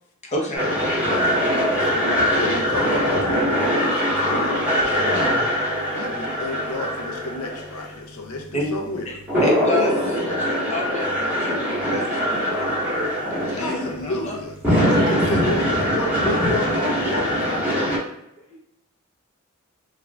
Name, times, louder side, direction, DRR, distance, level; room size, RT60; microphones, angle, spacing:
voice 1, 0.2-0.7 5.8-6.1 6.4-6.6 8.5-8.7 9.1-13.1 13.5-14.4 18.5-18.6, left 1 dB, 30° left, -2 dB, 0.6 m, -30 dB
sound 1, 0.5-18.0, equal, 5° right, 1.1 m, -23 dB
voice 2, 1.0-5.2 5.9-9.1 13.5-14.5 15.1-18.1, left 2 dB, 80° left, 2 dB, 0.6 m, -31 dB
voice 3, 14.7-15.1, equal, 45° right, -2 dB, 0.6 m, -29 dB
2.4 x 2.3 x 3.1 m, 0.80 s
head